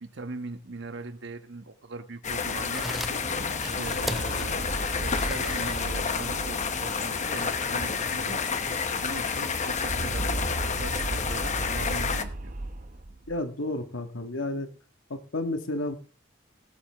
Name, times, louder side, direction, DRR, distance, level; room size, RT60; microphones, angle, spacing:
voice 1, 0.0-3.2 3.6-4.7 5.0-8.6 9.0-12.6, right 3 dB, 65° right, 1.3 m, -40 dB
sound 1, 2.2-12.2, left 5 dB, 40° left, 0.9 m, -30 dB
sound 2, 2.6-9.4, equal, ahead, 0.5 m, -41 dB
sound 3, 3.2-8.4 8.7-8.8 9.0-13.4, right 1 dB, 45° right, 0.9 m, -36 dB
voice 2, 13.3-14.7 15.1-16.0, left 2 dB, 80° left, 1.6 m, -31 dB
20.0 x 8.1 x 3.5 m
head